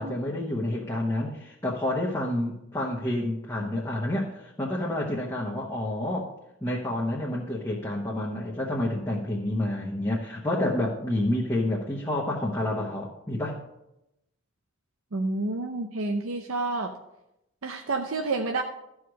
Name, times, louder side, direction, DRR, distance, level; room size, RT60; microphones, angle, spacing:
voice 1, 0.0-6.3 6.6-13.6, left 1 dB, 15° left, -4 dB, 1.0 m, -29 dB
voice 2, 15.1-16.9 17.6-18.6, right 3 dB, 80° right, 3 dB, 0.7 m, -29 dB
12.0 x 4.8 x 6.3 m, 0.87 s
head